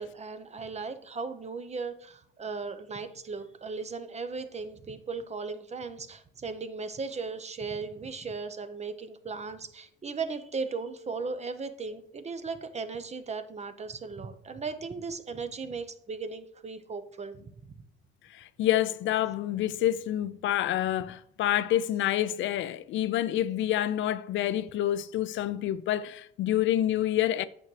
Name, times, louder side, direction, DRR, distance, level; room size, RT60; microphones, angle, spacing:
voice 1, 0.0-17.4, right 4 dB, 35° right, 0.8 m, -37 dB
voice 2, 18.3-27.4, left 12 dB, 70° left, 0.4 m, -28 dB
8.5 x 6.1 x 3.2 m
cardioid pair, 90°, 20 cm